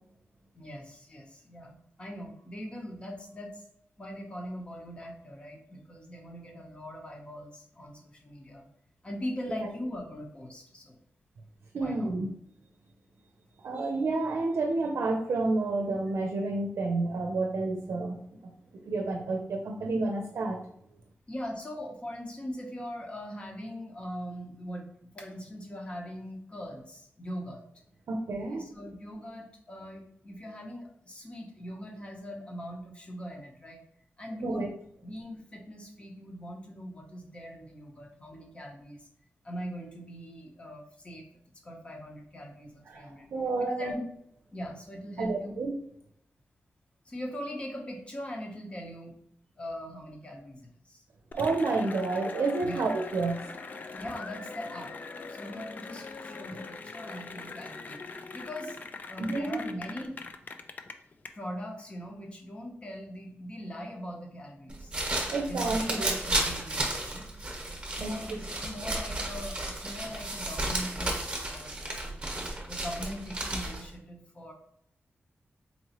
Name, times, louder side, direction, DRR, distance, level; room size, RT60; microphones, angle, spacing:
voice 1, 0.5-3.6 4.0-8.6 9.0-11.0 11.8-12.1 21.3-27.6 28.5-33.8 34.2-34.7 35.0-39.1 39.4-41.3 41.6-43.3 43.6-43.9 44.5-45.5 47.0-49.2 49.5-51.0 52.6-52.9 53.9-54.9 55.3-58.8 59.1-60.2 61.3-64.9 65.4-67.3 67.9-72.2 72.6-74.5, equal, 25° left, 0 dB, 0.8 m, -41 dB
voice 2, 11.7-12.3 13.6-18.2 18.9-20.6 28.1-28.7 34.4-34.7 42.9-43.9 45.2-45.7 51.3-53.4 59.2-59.6 65.3-66.1 68.0-68.4, right 3 dB, 85° right, 2 dB, 0.5 m, -30 dB
Cheering / Applause, 51.3-61.3, left 4 dB, 40° left, 0.3 m, -42 dB
sound 1, 64.7-73.9, right 1 dB, 20° right, 1.0 m, -33 dB
4.1 x 3.0 x 2.9 m, 0.70 s
wide cardioid pair, 155°, 4 cm